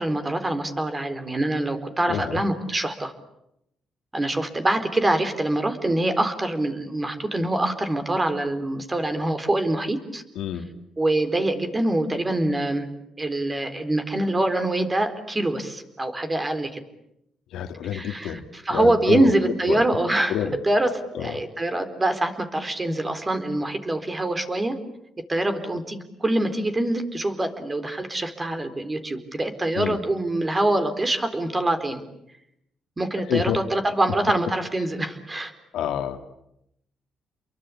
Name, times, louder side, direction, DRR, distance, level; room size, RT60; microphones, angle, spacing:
voice 1, 0.0-3.1 4.1-10.2 11.0-12.9 13.2-16.8 17.9-20.4 20.6-24.8 25.3-32.0 33.0-35.5, right 1 dB, 20° right, 8 dB, 4.2 m, -24 dB
voice 2, 2.1-2.4 10.4-10.7 17.5-18.4 18.7-19.3 19.7-19.8 20.3-20.6 21.1-21.4 29.7-30.0 33.3-33.6 35.7-36.2, left 10 dB, 85° left, 7 dB, 2.3 m, -27 dB
30.0 x 23.0 x 8.7 m, 0.80 s
cardioid pair, 90°, 0 cm